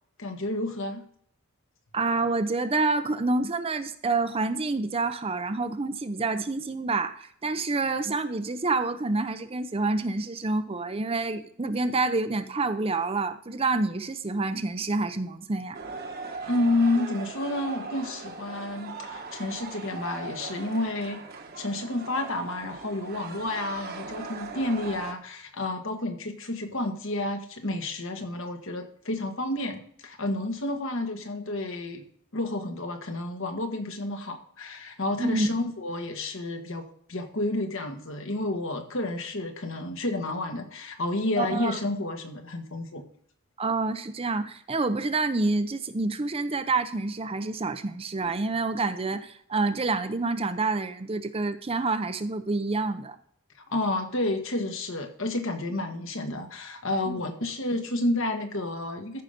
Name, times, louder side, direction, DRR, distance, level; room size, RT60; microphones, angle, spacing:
voice 1, 0.2-1.0 16.5-21.2 21.6-32.1 32.3-43.0 53.7-59.2, left 2 dB, 60° left, 5 dB, 1.6 m, -30 dB
voice 2, 1.9-15.8 35.2-35.5 41.4-41.8 43.6-53.2 57.1-57.2, right 3 dB, 25° right, 10 dB, 0.6 m, -28 dB
sound 1, 15.7-25.1, right 4 dB, 45° right, 1.2 m, -39 dB
14.0 x 5.7 x 5.1 m, 0.63 s
head